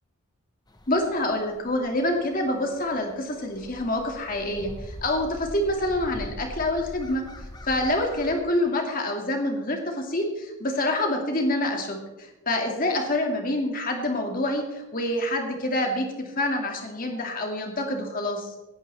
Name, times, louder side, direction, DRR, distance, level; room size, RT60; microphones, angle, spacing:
sound 1, 0.7-8.4, left 1 dB, 20° left, 1.0 m, -43 dB
voice 1, 0.9-7.2 7.7-18.5, left 1 dB, 40° left, 2 dB, 2.1 m, -27 dB
18.0 x 10.5 x 3.4 m, 1.0 s
head